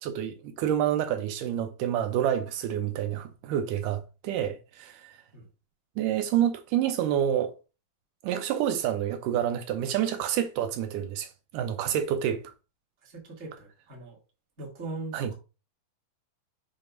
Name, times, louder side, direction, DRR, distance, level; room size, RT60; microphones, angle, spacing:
voice 1, 0.0-5.2 6.0-7.6 8.2-11.3 11.5-12.4 15.1-15.3, right 10 dB, 80° right, 1.9 m, -28 dB
voice 2, 13.0-14.2 14.6-15.3, right 3 dB, 30° right, 1.4 m, -40 dB
6.5 x 2.8 x 5.1 m
omnidirectional pair, 4.2 m